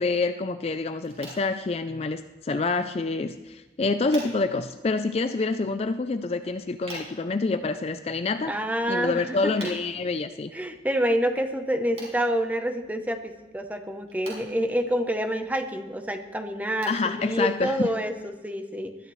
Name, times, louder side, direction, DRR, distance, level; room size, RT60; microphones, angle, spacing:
voice 1, 0.0-8.5 8.9-10.5 16.9-17.8, left 3 dB, 35° left, 10 dB, 0.4 m, -27 dB
sound 1, 1.0-18.2, right 2 dB, 35° right, 5.1 m, -49 dB
voice 2, 8.4-9.8 10.5-19.0, equal, 10° right, 7 dB, 0.8 m, -28 dB
20.0 x 12.5 x 3.2 m, 1.1 s
head